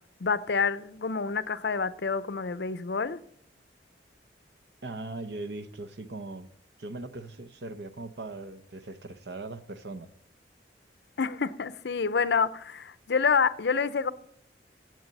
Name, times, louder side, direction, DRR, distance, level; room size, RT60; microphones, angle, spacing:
voice 1, 0.2-3.2 11.2-14.1, left 5 dB, 70° left, 0.6 m, -27 dB
voice 2, 4.8-6.5 6.8-10.1, right 2 dB, 70° right, 0.9 m, -39 dB
17.0 x 7.9 x 4.1 m
head